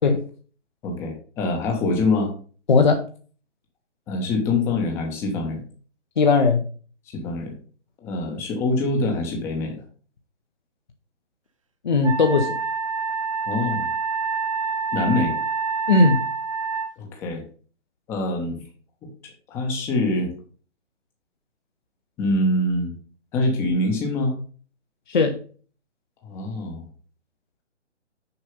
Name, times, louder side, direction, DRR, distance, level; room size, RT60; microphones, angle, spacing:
voice 1, 0.8-2.3 4.1-5.6 7.1-7.6 8.0-9.8 13.4-13.9 14.9-15.3 17.0-17.4 18.1-18.6 19.5-20.3 22.2-22.9 23.3-24.3 26.2-26.9, left 2 dB, 5° left, 2 dB, 0.9 m, -24 dB
voice 2, 2.7-3.0 6.2-6.6 11.8-12.6 15.9-16.2 25.1-25.4, left 4 dB, 40° left, 5 dB, 0.9 m, -18 dB
Wind instrument woodwind instrument, 12.0-16.9, right 5 dB, 30° right, 0.6 m, -27 dB
6.7 x 5.4 x 5.4 m, 0.41 s
figure-of-eight pair, 140°, 35 cm